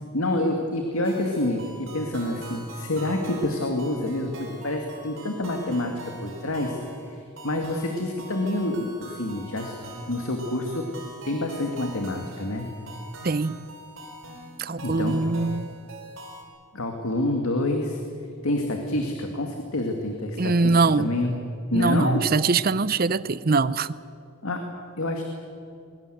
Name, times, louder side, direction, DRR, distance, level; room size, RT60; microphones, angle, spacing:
voice 1, 0.1-10.9 11.2-12.7 14.8-15.2 16.7-18.0 18.4-22.3 24.4-24.7 25.0-25.2, left 1 dB, 75° left, 2.2 m, -27 dB
sound 1, 1.0-16.4, right 1 dB, 60° right, 4.7 m, -43 dB
voice 2, 13.2-13.6 14.6-15.7 20.4-21.1 21.7-24.0, right 3 dB, 40° right, 0.6 m, -23 dB
22.5 x 22.0 x 8.0 m
head